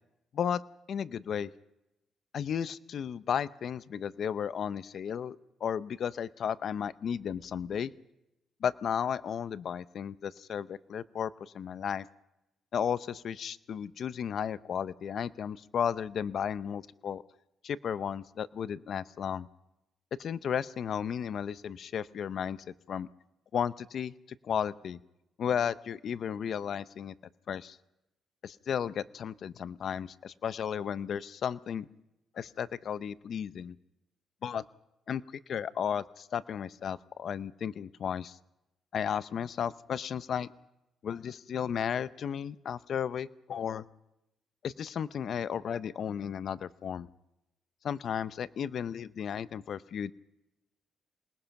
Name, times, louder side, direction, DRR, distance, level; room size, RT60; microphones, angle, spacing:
voice 1, 0.9-1.5 2.3-5.4 5.6-7.9 8.6-12.0 12.7-17.2 17.6-19.5 20.2-23.1 23.5-24.1 24.4-25.0 25.4-27.1 27.5-27.8 28.4-31.9 32.3-33.8 34.4-34.6 35.1-38.4 38.9-40.5 41.0-43.8 44.6-47.1 47.8-50.1, left 8 dB, 60° left, 17 dB, 0.7 m, -34 dB
27.5 x 19.5 x 5.9 m, 0.89 s
cardioid pair, 90°, 0 cm